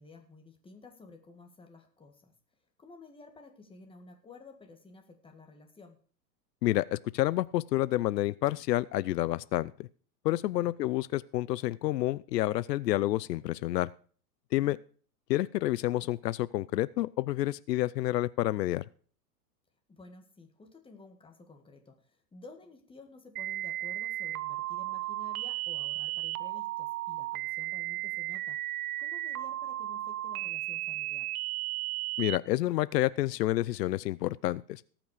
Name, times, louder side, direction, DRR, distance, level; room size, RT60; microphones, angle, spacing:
voice 1, 0.0-2.3 2.8-6.0 10.6-10.7 19.9-28.7 29.0-31.3, left 3 dB, 10° left, 5 dB, 2.0 m, -53 dB
voice 2, 6.6-9.9 10.2-13.9 14.5-14.8 15.3-18.8 32.2-34.8, left 16 dB, 85° left, 19 dB, 0.6 m, -29 dB
sound 1, 23.4-32.4, right 16 dB, 65° right, 0.9 m, -35 dB
18.0 x 6.1 x 4.9 m, 0.44 s
hypercardioid pair, 130°, 48 cm